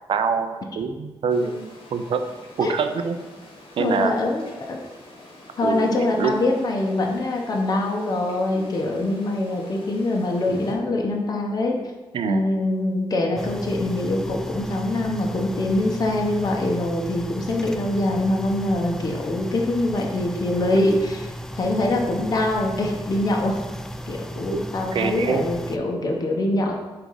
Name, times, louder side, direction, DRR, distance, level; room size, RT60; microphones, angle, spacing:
voice 1, 0.1-2.2 2.6-3.2 3.8-4.1 5.6-6.4 8.5-8.7 12.1-12.5 20.8-21.0 24.5-24.6 24.9-25.5, right 5 dB, 70° right, 8 dB, 0.5 m, -25 dB
sound 1, 1.3-10.8, left 1 dB, 70° left, 1.3 m, -44 dB
voice 2, 3.8-4.8 5.6-11.8 12.2-21.3 21.6-23.6 24.1-26.7, left 2 dB, 45° left, 0 dB, 0.9 m, -24 dB
sound 2, 13.4-25.8, right 1 dB, 5° left, 0.3 m, -35 dB
4.7 x 3.7 x 5.4 m, 1.2 s
wide cardioid pair, 110°, 9 cm